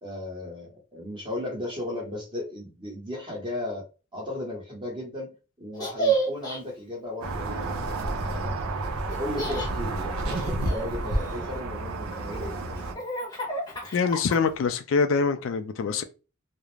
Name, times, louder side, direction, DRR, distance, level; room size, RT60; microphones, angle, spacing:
voice 1, 0.0-3.8 4.1-8.5 9.2-13.0, left 1 dB, 25° right, 1.0 m, -36 dB
Laughter, 5.7-6.6 9.1-9.7 10.3-11.5 12.1-14.7, right 3 dB, 20° left, 0.7 m, -31 dB
sound 1, 7.2-12.9, right 2 dB, 85° right, 0.6 m, -30 dB
voice 2, 13.9-16.0, left 5 dB, 60° left, 0.3 m, -24 dB
2.4 x 2.0 x 3.1 m
head